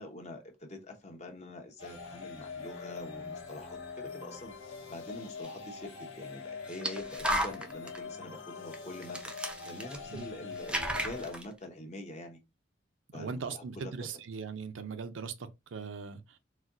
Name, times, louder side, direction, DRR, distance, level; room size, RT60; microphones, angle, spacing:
voice 1, 0.0-4.5 4.9-9.2 9.6-12.4 13.1-14.1, left 1 dB, 35° left, 0.8 m, -45 dB
sound 1, 1.8-11.3, left 5 dB, 90° left, 1.2 m, -43 dB
sound 2, 5.4-5.5 6.7-8.0 8.7-8.8 9.0-10.3 10.5-11.4, right 1 dB, 5° right, 0.4 m, -34 dB
voice 2, 13.1-16.4, right 5 dB, 75° right, 0.5 m, -40 dB
4.1 x 2.3 x 2.5 m
head